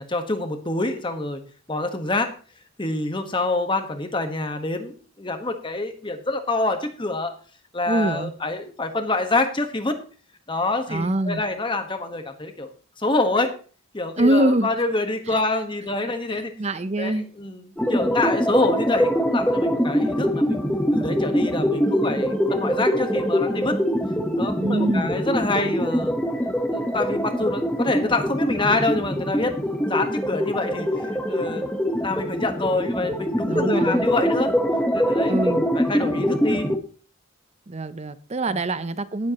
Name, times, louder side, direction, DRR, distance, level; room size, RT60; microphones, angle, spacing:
voice 1, 0.0-1.4 1.7-2.3 2.8-7.3 7.7-10.0 10.5-12.7 13.0-13.5 13.9-16.5 17.0-20.6 20.9-23.8 24.4-26.2 26.7-30.9 31.3-31.6 32.0-34.5 34.9-36.7 38.5-38.6, left 2 dB, 20° left, 1.2 m, -26 dB
voice 2, 7.9-8.3 10.9-11.4 14.2-14.7 15.3-15.4 16.3-17.3 24.6-25.3 33.5-34.1 35.3-35.7 37.7-39.3, right 1 dB, 30° right, 0.6 m, -24 dB
sound 1, 17.8-36.8, equal, 5° left, 0.9 m, -23 dB
18.5 x 7.6 x 2.9 m
head